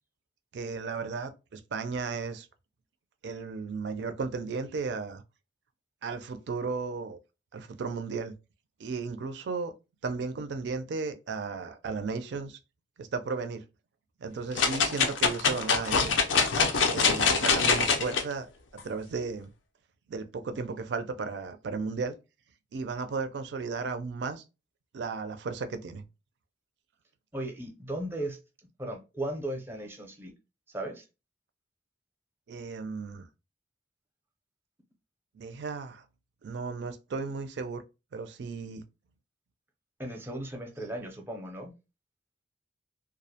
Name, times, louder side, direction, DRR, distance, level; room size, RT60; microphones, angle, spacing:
voice 1, 0.5-2.5 3.2-5.2 6.0-7.2 7.5-8.3 8.8-9.7 10.0-12.6 13.0-13.6 14.2-16.1 16.9-18.5 18.7-19.5 20.1-22.2 22.7-24.4 24.9-26.0 32.5-33.3 35.3-36.0 36.4-37.8 38.1-38.8, right 4 dB, 65° right, 0.4 m, -35 dB
sound 1, 14.6-18.2 18.8-18.9, left 5 dB, 90° left, 0.5 m, -24 dB
voice 2, 27.3-28.4 28.8-30.3 30.7-31.0 40.0-41.7, right 1 dB, 15° right, 0.5 m, -36 dB
2.3 x 2.0 x 2.7 m
head